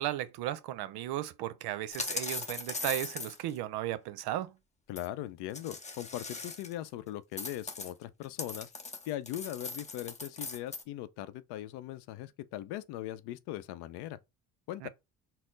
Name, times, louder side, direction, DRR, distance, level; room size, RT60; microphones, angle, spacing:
voice 1, 0.0-4.5 14.8-14.9, right 13 dB, 65° right, 0.6 m, -35 dB
sound 1, 1.9-3.6 5.0-5.1 5.5-6.9 7.4-10.8, left 3 dB, 15° left, 0.7 m, -39 dB
voice 2, 4.9-8.7 9.1-14.2 14.7-14.9, left 13 dB, 70° left, 0.6 m, -40 dB
4.3 x 2.0 x 3.8 m
supercardioid pair, 85°, 42 cm